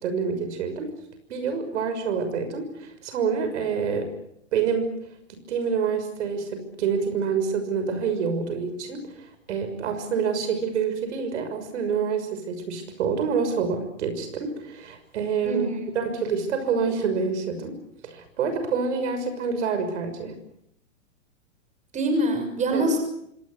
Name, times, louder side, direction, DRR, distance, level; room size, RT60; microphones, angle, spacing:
voice 1, 0.0-0.9 1.3-4.1 4.5-4.9 5.5-15.7 15.9-17.8 18.0-20.4 22.7-22.9, right 6 dB, 65° right, 8 dB, 6.3 m, -27 dB
voice 2, 15.4-15.9 21.9-23.0, right 1 dB, 20° right, 6 dB, 6.3 m, -24 dB
26.5 x 20.0 x 8.3 m, 0.77 s
hypercardioid pair, 125°, 39 cm